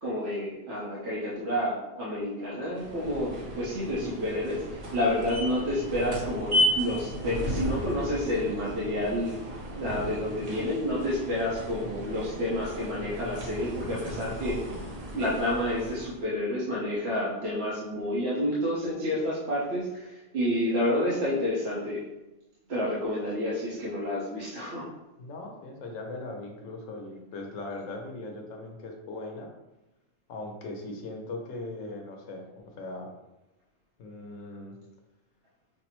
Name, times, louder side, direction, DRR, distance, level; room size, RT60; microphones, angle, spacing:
voice 1, 0.0-9.3 9.7-14.6 15.1-22.0 22.7-24.8, left 1 dB, 60° right, -8 dB, 1.1 m, -29 dB
sound 1, 2.7-16.3, equal, 40° right, 0.6 m, -34 dB
voice 2, 25.2-29.5 30.3-33.1 34.0-34.8, left 2 dB, 85° left, 2 dB, 1.1 m, -39 dB
5.7 x 2.0 x 3.0 m, 0.95 s
omnidirectional pair, 1.3 m